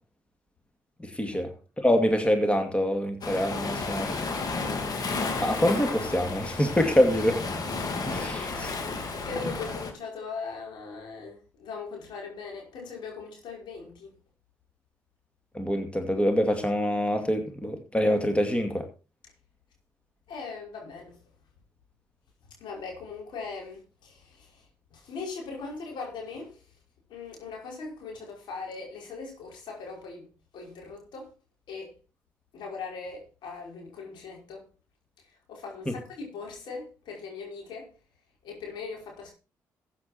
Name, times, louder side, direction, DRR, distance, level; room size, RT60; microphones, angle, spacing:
voice 1, 1.0-1.5 1.8-4.2 5.4-7.4 8.1-8.8 15.5-18.9 35.9-36.0, equal, 15° left, 2.4 m, -25 dB
Waves surf, 3.2-9.9, left 3 dB, 55° left, 3.2 m, -32 dB
voice 2, 9.2-14.1 20.3-21.1 22.6-24.6 24.9-26.6 27.1-30.3 30.5-31.3 31.7-31.9 32.5-34.6 35.5-37.9 38.4-39.3, left 4 dB, 70° left, 5.4 m, -39 dB
14.0 x 8.7 x 4.4 m
hypercardioid pair, 45°, 8 cm